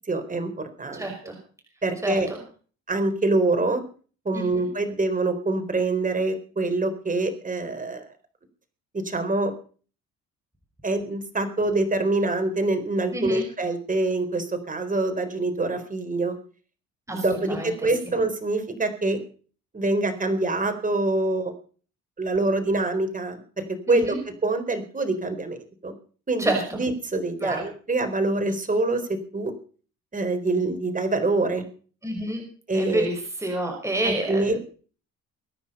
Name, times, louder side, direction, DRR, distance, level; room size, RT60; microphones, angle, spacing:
voice 1, 0.1-0.5 0.8-1.3 1.8-2.3 2.9-3.8 4.2-8.1 8.9-9.5 10.8-16.3 17.1-19.2 19.7-21.5 22.2-24.2 24.4-25.6 25.8-25.9 26.3-29.5 30.1-31.6 32.7-33.1 34.0-34.6, right 2 dB, 25° right, 7 dB, 4.4 m, -25 dB
voice 2, 0.9-1.3 2.0-2.4 4.3-4.7 13.1-13.4 17.1-17.7 23.9-24.2 26.4-26.8 27.4-27.6 32.0-32.4 32.7-34.6, right 1 dB, 10° right, 2 dB, 5.5 m, -28 dB
23.0 x 10.0 x 5.6 m, 0.41 s
cardioid pair, 90°, 30 cm